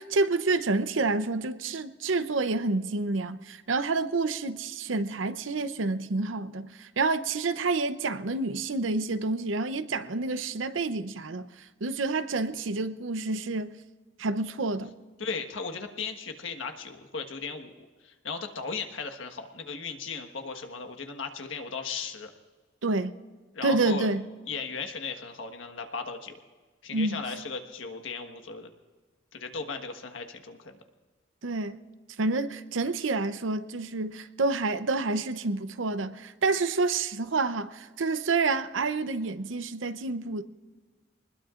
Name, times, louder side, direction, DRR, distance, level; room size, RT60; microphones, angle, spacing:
voice 1, 0.0-11.5 11.8-13.7 14.2-14.9 22.8-23.1 23.6-24.2 26.9-27.2 31.4-31.8 32.2-40.4, right 3 dB, 80° right, 0.7 m, -28 dB
voice 2, 15.2-22.3 23.5-24.1 24.5-26.4 26.8-28.7 29.3-30.7, left 4 dB, 85° left, 1.5 m, -36 dB
25.0 x 20.5 x 2.5 m
head